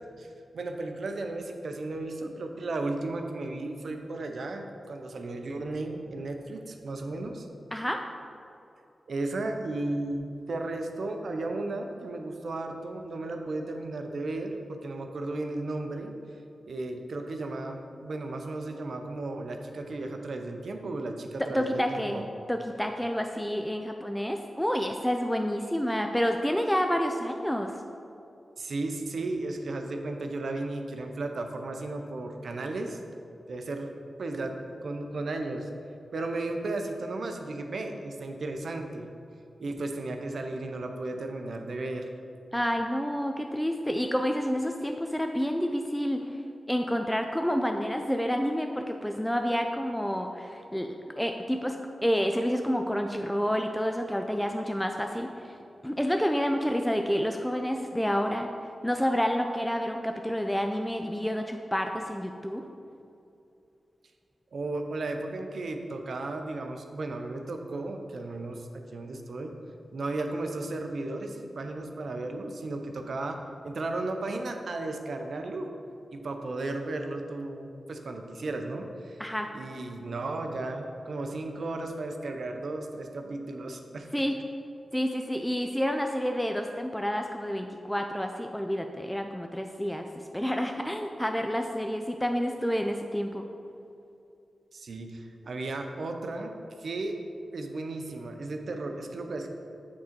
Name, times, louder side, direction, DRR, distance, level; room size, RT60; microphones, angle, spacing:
voice 1, 0.2-7.5 9.1-16.1 16.6-22.3 28.6-33.0 33.5-35.7 36.1-39.1 39.6-42.1 64.5-69.5 69.9-73.4 73.6-75.7 76.1-79.2 79.5-84.1 94.7-96.5 96.8-97.2 97.5-99.5, right 2 dB, 70° right, 4 dB, 0.6 m, -34 dB
voice 2, 21.4-22.2 22.5-27.7 42.5-46.2 46.7-51.8 52.0-55.6 55.8-58.5 58.8-62.6 79.2-79.5 84.1-84.3 84.9-90.1 90.3-93.4, equal, 5° left, 4 dB, 0.4 m, -29 dB
8.5 x 3.7 x 4.4 m, 2.6 s
cardioid pair, 60°, 0 cm